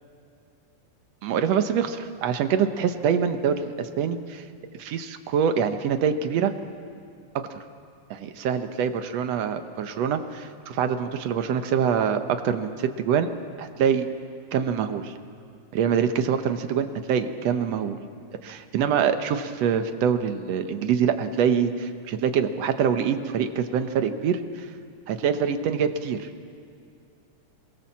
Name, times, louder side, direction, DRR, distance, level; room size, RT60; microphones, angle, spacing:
voice 1, 1.2-4.4 4.7-6.5 8.1-13.3 13.6-14.1 14.5-15.1 15.7-18.0 18.4-24.7 25.1-26.3, right 7 dB, 65° right, 8 dB, 2.0 m, -25 dB
26.0 x 23.0 x 7.4 m, 2.4 s
omnidirectional pair, 3.6 m